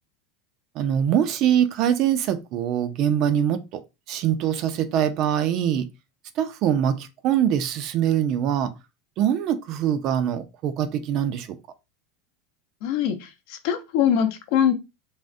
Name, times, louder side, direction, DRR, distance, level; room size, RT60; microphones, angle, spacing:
voice 1, 0.7-5.9 6.4-8.7 9.2-11.6, right 9 dB, 40° right, 0.4 m, -23 dB
voice 2, 12.8-14.7, left 9 dB, 55° left, 0.6 m, -23 dB
3.4 x 2.1 x 2.5 m
supercardioid pair, 160°, 0 cm